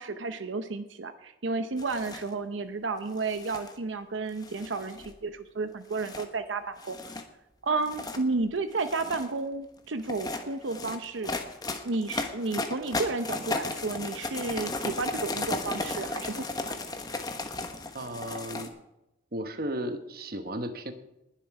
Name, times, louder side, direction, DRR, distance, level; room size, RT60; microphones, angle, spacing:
voice 1, 0.0-7.0 7.6-11.3 11.8-16.7, right 3 dB, 85° right, 9 dB, 0.8 m, -32 dB
sound 1, 1.8-2.3 3.2-3.7 4.4-5.2 5.9-6.2 6.8-7.2 7.8-8.2 8.7-9.3 10.0-18.7, left 2 dB, 20° left, 1.1 m, -35 dB
voice 2, 17.9-18.7 19.3-20.9, right 1 dB, 50° right, 8 dB, 1.2 m, -34 dB
20.0 x 7.6 x 4.8 m, 0.91 s
head